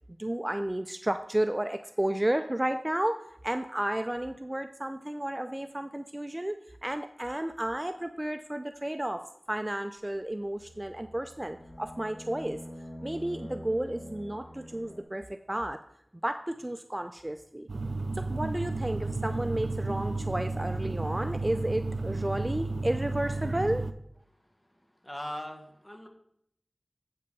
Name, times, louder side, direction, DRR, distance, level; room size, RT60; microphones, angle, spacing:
voice 1, 0.2-3.2 3.4-12.6 13.0-15.8 16.2-17.7 18.2-23.8, right 1 dB, 20° right, 8 dB, 0.4 m, -32 dB
sound 1, 10.6-15.0, equal, 75° left, 2.6 m, -45 dB
sound 2, 17.7-23.9, right 3 dB, 90° right, 0.4 m, -32 dB
voice 2, 25.0-26.1, left 1 dB, 20° left, 3 dB, 1.4 m, -39 dB
7.9 x 5.3 x 5.3 m, 0.72 s
wide cardioid pair, 60°, 0 cm